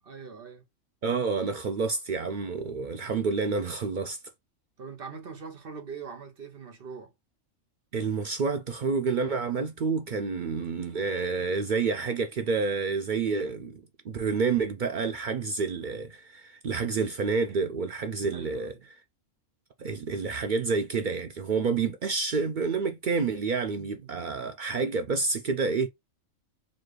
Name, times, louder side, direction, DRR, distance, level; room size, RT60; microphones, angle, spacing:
voice 1, 0.1-0.6 4.8-7.1 18.3-18.9 23.8-24.1, right 5 dB, 45° right, 1.0 m, -42 dB
voice 2, 1.0-4.2 7.9-18.7 19.8-25.9, right 4 dB, 70° right, 0.4 m, -29 dB
4.1 x 2.4 x 3.1 m
omnidirectional pair, 1.4 m